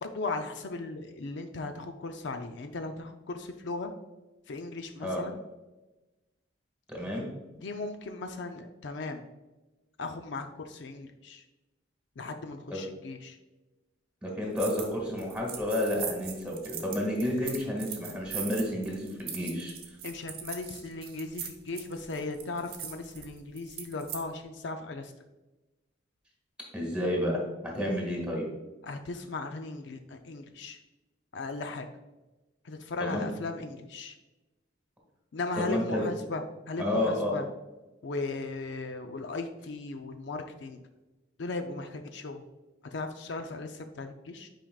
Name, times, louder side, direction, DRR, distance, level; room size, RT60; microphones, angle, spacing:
voice 1, 0.0-3.9 4.5-5.4 7.5-9.2 10.0-11.4 12.2-13.4 20.0-25.1 28.8-30.8 31.3-31.9 32.6-34.1 35.3-37.5 38.0-40.8 41.4-42.4 42.9-44.5, left 3 dB, 65° left, 6 dB, 0.5 m, -37 dB
voice 2, 6.9-7.3 12.7-12.8 14.2-19.7 26.7-28.5 33.0-33.3 35.5-36.0 36.8-37.4, left 1 dB, 5° right, -2 dB, 1.7 m, -30 dB
sound 1, 14.6-14.9 15.2-24.2, right 8 dB, 50° right, 1.0 m, -40 dB
9.1 x 4.9 x 2.3 m, 1.1 s
head